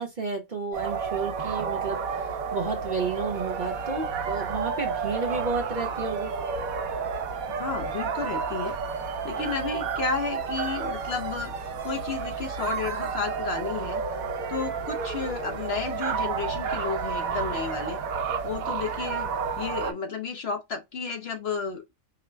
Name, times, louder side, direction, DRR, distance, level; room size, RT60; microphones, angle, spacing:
voice 1, 0.0-6.3, right 4 dB, 40° right, 0.9 m, -32 dB
sound 1, 0.7-19.9, right 5 dB, 80° right, 1.1 m, -31 dB
Motor vehicle (road) / Siren, 3.3-17.8, right 4 dB, 65° right, 1.3 m, -50 dB
voice 2, 7.6-8.7 9.2-14.0 14.5-18.0 18.4-19.3 19.6-21.8, left 5 dB, 55° left, 0.9 m, -32 dB
5.0 x 2.1 x 3.3 m
omnidirectional pair, 1.4 m